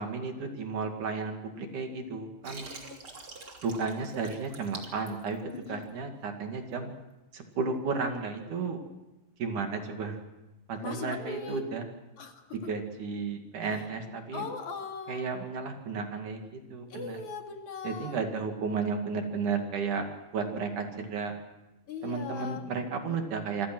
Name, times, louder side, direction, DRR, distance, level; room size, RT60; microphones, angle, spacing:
voice 1, 0.0-2.7 3.6-6.9 7.3-8.8 9.4-10.2 10.7-11.9 12.5-14.5 15.1-17.2 17.8-20.1 20.3-21.3 22.0-23.7, right 4 dB, 60° right, 4 dB, 3.7 m, -33 dB
Water, 2.4-5.9, right 3 dB, 40° right, 3.6 m, -45 dB
voice 2, 2.7-3.0 5.5-5.9 10.7-11.7 12.2-12.5 13.7-13.8 14.3-15.4 16.9-18.2 21.9-22.7, left 4 dB, 60° left, 4 dB, 3.5 m, -39 dB
26.5 x 25.0 x 6.2 m, 0.99 s
omnidirectional pair, 4.0 m